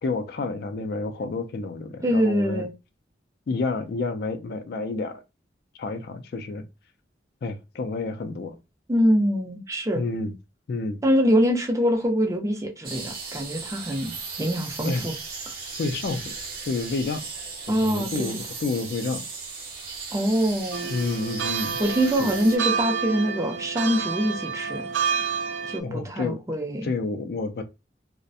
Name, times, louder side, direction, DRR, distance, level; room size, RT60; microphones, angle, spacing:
voice 1, 0.0-2.7 3.5-5.2 5.8-6.6 7.4-8.6 9.9-10.3 10.7-11.0 14.8-15.1 15.8-16.3 16.7-17.2 17.7-19.3 20.9-21.8 22.2-22.4 25.8-26.4 26.8-27.6, left 3 dB, 55° left, 0.3 m, -29 dB
voice 2, 2.0-2.7 8.9-10.0 11.0-15.1 17.7-18.3 20.1-20.9 21.8-24.9 25.6-26.9, equal, 15° right, 0.5 m, -24 dB
sound 1, 12.8-22.6, right 4 dB, 50° right, 0.7 m, -37 dB
sound 2, 20.7-25.8, right 6 dB, 85° right, 0.3 m, -29 dB
2.4 x 2.1 x 2.6 m
head